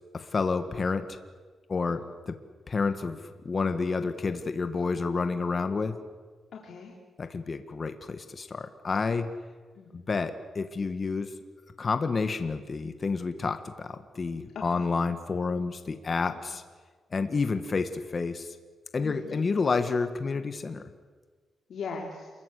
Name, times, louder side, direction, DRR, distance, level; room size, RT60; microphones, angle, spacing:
voice 1, 0.1-1.1 1.7-2.4 2.7-3.2 3.4-5.9 7.2-9.3 9.9-11.3 11.8-16.6 17.1-18.5 18.9-20.8, left 4 dB, 35° left, 8 dB, 1.8 m, -29 dB
voice 2, 6.5-6.9 9.8-10.1 14.5-14.9 16.3-16.4 17.2-17.5 19.0-19.4 21.7-22.3, left 5 dB, 65° left, -1 dB, 3.7 m, -40 dB
28.0 x 22.0 x 8.5 m, 1.4 s
cardioid pair, 115°, 0 cm